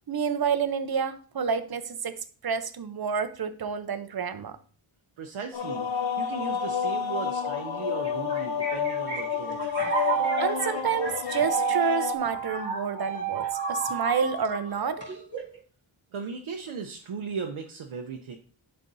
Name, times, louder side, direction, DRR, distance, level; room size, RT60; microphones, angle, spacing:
voice 1, 0.1-4.6 10.4-15.0, right 6 dB, 50° right, 11 dB, 0.7 m, -29 dB
voice 2, 5.2-9.7 16.1-18.4, right 5 dB, 85° right, 3 dB, 0.8 m, -37 dB
sound 1, 5.5-12.1, left 7 dB, 75° left, 0.8 m, -30 dB
sound 2, 8.0-15.6, right 6 dB, 25° right, 2.7 m, -31 dB
11.0 x 4.5 x 2.7 m, 0.40 s
wide cardioid pair, 90°, 47 cm